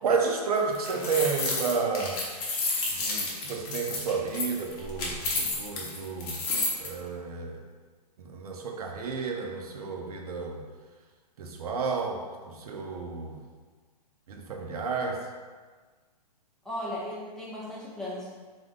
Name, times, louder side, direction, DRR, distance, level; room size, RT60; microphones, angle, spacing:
voice 1, 0.0-2.2 2.9-6.4 6.8-7.6 8.2-10.6 11.4-13.4 14.3-15.3, right 5 dB, 65° right, 2 dB, 0.7 m, -31 dB
sound 1, 0.6-6.9, left 3 dB, 25° left, 0.8 m, -31 dB
voice 2, 16.6-18.3, left 1 dB, ahead, -8 dB, 0.5 m, -36 dB
3.8 x 3.0 x 3.6 m, 1.5 s
hypercardioid pair, 150°, 21 cm